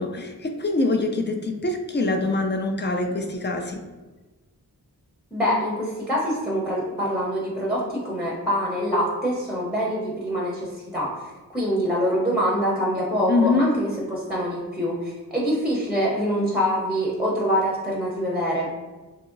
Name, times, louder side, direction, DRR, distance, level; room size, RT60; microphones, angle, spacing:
voice 1, 0.0-3.8 13.3-13.7, left 3 dB, 30° left, 4 dB, 0.4 m, -24 dB
voice 2, 5.3-11.1 11.5-18.7, equal, 5° right, -4 dB, 0.7 m, -25 dB
2.9 x 2.7 x 2.5 m, 1.2 s
cardioid pair, 45°, 37 cm